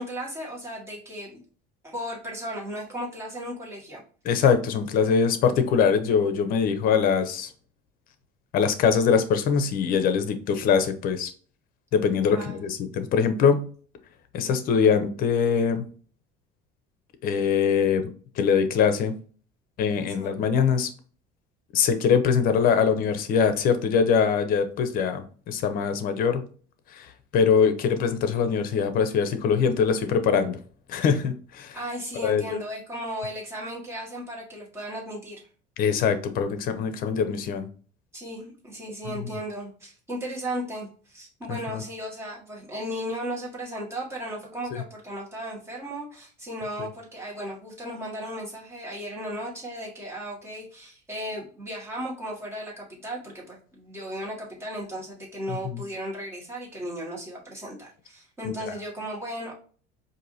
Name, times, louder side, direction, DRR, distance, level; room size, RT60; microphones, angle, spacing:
voice 1, 0.0-1.4 1.8-4.0 12.3-12.6 20.1-20.3 31.7-35.4 38.1-59.5, equal, 15° right, -4 dB, 1.7 m, -35 dB
voice 2, 4.2-7.5 8.5-11.3 11.9-13.6 14.3-15.9 17.2-18.1 18.4-19.1 19.8-20.9 21.7-26.4 26.9-30.6 30.9-31.8 32.2-32.4 35.8-37.7 39.0-39.3 41.5-41.8 44.7-44.8 46.8-46.9 55.5-55.8 58.4-58.5, left 6 dB, 50° left, 10 dB, 0.7 m, -23 dB
4.6 x 2.7 x 2.7 m, 0.42 s
cardioid pair, 135°, 19 cm